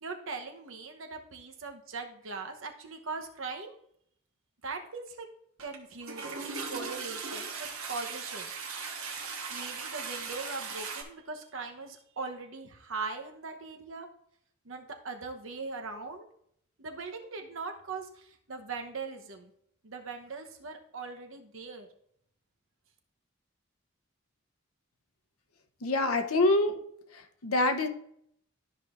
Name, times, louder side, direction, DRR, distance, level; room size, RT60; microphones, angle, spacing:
voice 1, 0.0-3.8 4.6-5.3 5.6-8.5 9.5-14.1 14.6-16.3 16.8-19.5 19.8-21.9, right 4 dB, 65° right, 4 dB, 1.0 m, -40 dB
Toilet flush, 5.6-5.8 6.0-11.0, right 5 dB, 85° right, 1.3 m, -38 dB
voice 2, 25.8-26.8 27.4-27.9, left 2 dB, 90° left, 7 dB, 0.8 m, -25 dB
12.5 x 5.3 x 2.5 m, 0.71 s
head